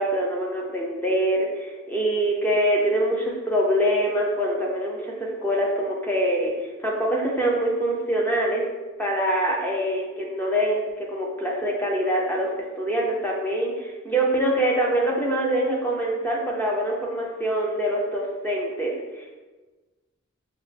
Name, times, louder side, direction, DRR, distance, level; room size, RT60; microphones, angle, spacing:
voice 1, 0.0-8.6 9.0-12.5 12.8-19.3, right 1 dB, 10° left, -2 dB, 0.5 m, -24 dB
5.3 x 2.0 x 3.3 m, 1.2 s
head